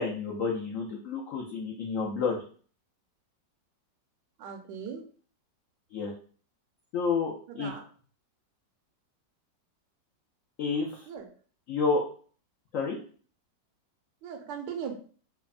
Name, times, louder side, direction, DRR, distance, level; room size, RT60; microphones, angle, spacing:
voice 1, 0.0-2.4 5.9-6.1 6.9-7.7 10.6-11.0 11.7-12.0 12.7-13.0, left 4 dB, 90° left, -1 dB, 0.7 m, -30 dB
voice 2, 4.4-5.0 7.5-7.8 11.1-11.3 14.2-15.0, right 7 dB, 80° right, 3 dB, 1.2 m, -38 dB
3.3 x 2.1 x 2.3 m, 0.43 s
omnidirectional pair, 1.9 m